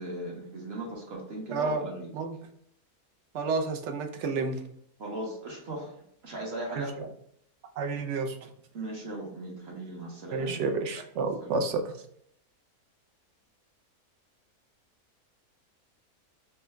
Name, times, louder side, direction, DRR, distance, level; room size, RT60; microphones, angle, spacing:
voice 1, 0.0-2.1 5.0-6.0 6.2-7.0 8.7-10.7 11.4-11.6, right 1 dB, 50° right, -2 dB, 1.1 m, -38 dB
voice 2, 1.5-1.9 2.1-2.4 3.3-4.6 6.8-7.1 7.8-8.4 10.3-11.9, right 4 dB, 65° right, 6 dB, 0.7 m, -30 dB
4.4 x 2.2 x 3.4 m, 0.68 s
omnidirectional pair, 1.6 m